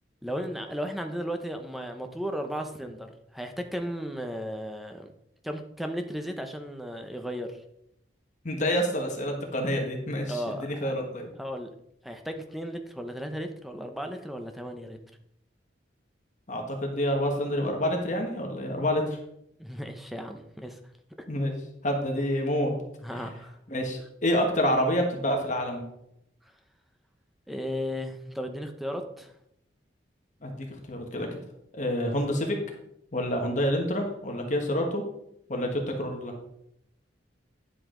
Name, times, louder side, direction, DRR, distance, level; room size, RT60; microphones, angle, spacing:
voice 1, 0.2-5.1 5.4-7.6 10.3-10.9 11.4-11.7 12.0-15.0 19.6-20.8 23.0-23.5 27.5-29.3, equal, ahead, 5 dB, 0.8 m, -35 dB
voice 2, 8.4-11.3 16.5-19.2 21.3-21.5 21.8-22.7 23.1-23.2 23.7-25.8 30.4-31.3 31.7-32.6 33.1-35.0 35.5-36.3, equal, 45° left, 2 dB, 1.5 m, -28 dB
10.0 x 7.6 x 3.8 m, 0.77 s
head